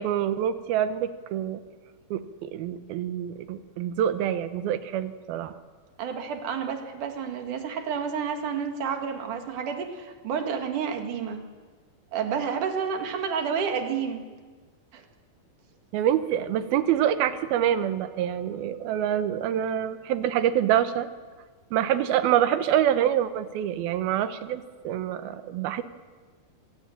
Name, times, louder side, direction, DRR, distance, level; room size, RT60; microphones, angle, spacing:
voice 1, 0.0-1.6 2.1-5.5 15.9-21.1 21.7-25.8, right 10 dB, 85° right, 12 dB, 2.9 m, -26 dB
voice 2, 6.0-11.5 12.1-14.3 14.9-15.0, right 6 dB, 60° right, 5 dB, 3.2 m, -30 dB
25.5 x 16.5 x 8.8 m, 1.5 s
omnidirectional pair, 4.3 m